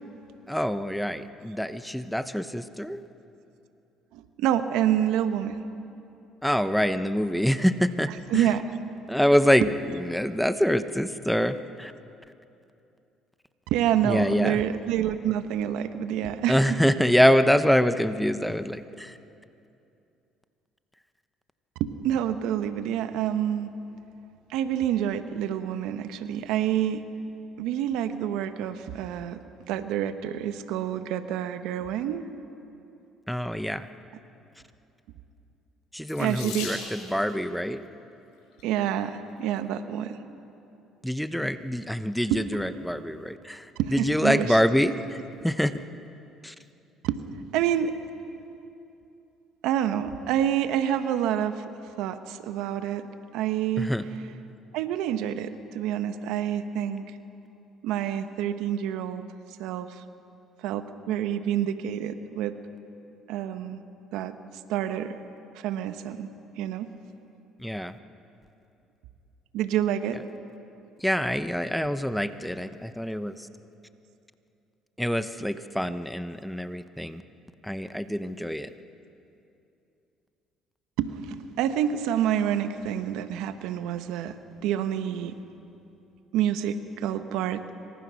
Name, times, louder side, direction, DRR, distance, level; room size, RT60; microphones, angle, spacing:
voice 1, 0.5-3.0 6.4-8.5 9.1-11.9 14.0-14.6 16.5-19.2 33.3-33.9 35.9-37.8 41.0-45.8 46.4-46.5 53.8-54.1 67.6-68.0 71.0-73.5 75.0-77.2 77.6-78.7, equal, ahead, 11 dB, 1.0 m, -25 dB
voice 2, 4.1-5.6 8.1-8.6 9.6-9.7 13.7-17.0 21.8-23.7 24.5-27.1 27.6-32.3 36.2-36.7 38.6-40.2 42.3-42.4 43.8-44.6 47.0-47.2 47.5-48.0 49.6-51.6 52.0-53.1 53.3-54.3 54.7-57.1 57.8-59.2 59.6-60.0 60.6-62.5 63.3-63.8 64.1-64.3 64.7-65.2 65.5-66.3 66.6-66.9 69.5-70.2 81.0-84.4 84.6-85.4 86.3-87.7, right 10 dB, 80° right, 9 dB, 1.2 m, -28 dB
Water tap faucet / Sink (filling or washing), 36.1-37.3 38.3-38.7 39.4-39.5 39.9-40.0, left 5 dB, 90° left, 7.4 m, -38 dB
27.0 x 25.0 x 6.4 m, 2.7 s
supercardioid pair, 80°, 0 cm